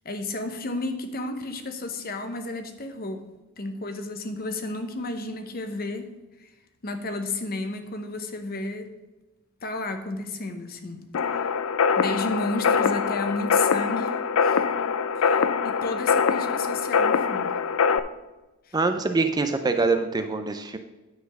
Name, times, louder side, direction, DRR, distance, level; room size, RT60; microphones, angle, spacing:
voice 1, 0.0-3.3 3.6-6.1 6.4-6.5 6.8-8.9 9.6-11.1 12.0-17.5 18.7-18.8, left 2 dB, 40° left, 7 dB, 0.9 m, -32 dB
sound 1, 11.1-18.0, left 6 dB, 70° left, 0.4 m, -23 dB
voice 2, 18.7-20.8, right 3 dB, 20° right, 7 dB, 0.4 m, -24 dB
9.4 x 4.3 x 6.5 m, 1.1 s
head